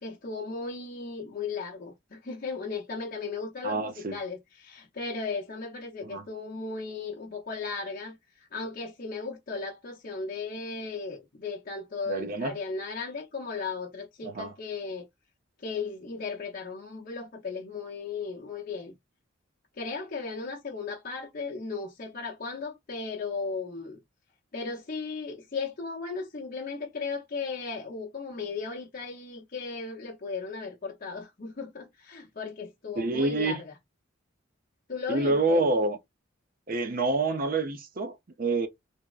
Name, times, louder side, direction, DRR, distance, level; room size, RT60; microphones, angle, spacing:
voice 1, 0.0-15.1 15.6-18.9 19.8-24.0 24.5-33.7 34.9-35.7, left 4 dB, 45° left, 0.7 m, -36 dB
voice 2, 3.6-4.2 6.0-6.2 12.1-12.6 14.2-14.5 33.0-33.6 35.1-36.0 36.7-38.7, right 2 dB, 45° right, 0.5 m, -27 dB
3.4 x 2.0 x 2.4 m
head